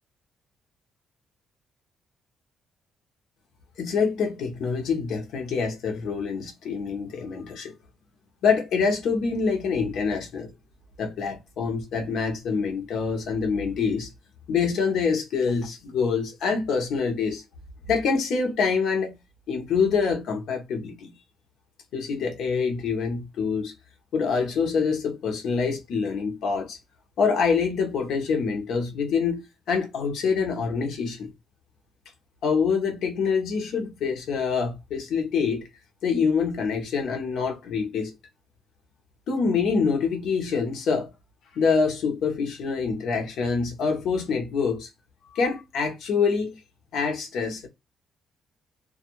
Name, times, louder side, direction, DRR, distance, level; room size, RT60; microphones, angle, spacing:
voice 1, 3.8-7.7 8.4-10.5 11.0-14.1 14.5-17.4 17.9-19.1 19.5-21.1 21.9-23.7 24.1-26.8 27.2-29.4 29.7-31.3 32.4-35.7 36.0-38.1 39.3-41.1 41.5-44.9 45.3-46.5 46.9-47.7, left 5 dB, 75° left, 0.8 m, -25 dB
2.3 x 2.2 x 2.9 m
cardioid pair, 75°, 0 cm